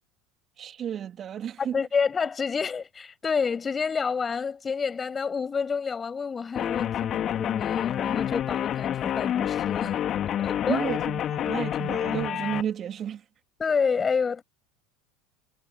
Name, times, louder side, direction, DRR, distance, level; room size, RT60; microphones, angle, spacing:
voice 1, 0.6-1.8 10.7-13.2, right 9 dB, 35° right, 2.9 m, -32 dB
voice 2, 1.6-9.9 10.4-10.8 13.6-14.4, left 5 dB, 25° left, 6.2 m, -28 dB
sound 1, 6.6-12.6, left 10 dB, 40° left, 3.1 m, -28 dB
figure-of-eight pair, 75°, 0 cm